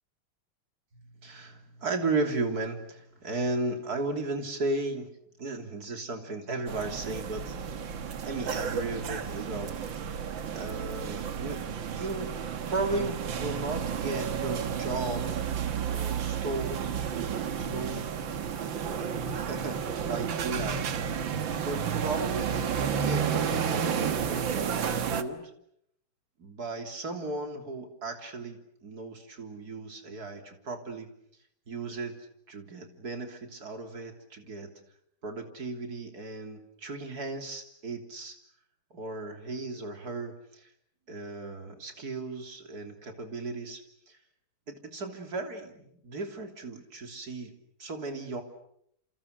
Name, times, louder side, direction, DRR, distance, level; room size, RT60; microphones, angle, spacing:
voice 1, 1.2-5.1 5.4-7.6 8.2-9.7 10.5-11.6 11.9-12.3 12.7-15.6 15.9-16.8 17.6-18.2 18.6-20.8 21.6-25.5 26.4-31.1 31.7-32.1 32.5-34.7 35.2-38.4 38.9-40.7 41.1-43.8 44.7-47.5 47.8-48.4, right 3 dB, 40° right, 5 dB, 3.7 m, -35 dB
sound 1, 6.7-25.2, right 7 dB, 65° right, 2.1 m, -31 dB
29.0 x 29.0 x 6.6 m, 0.72 s
omnidirectional pair, 2.4 m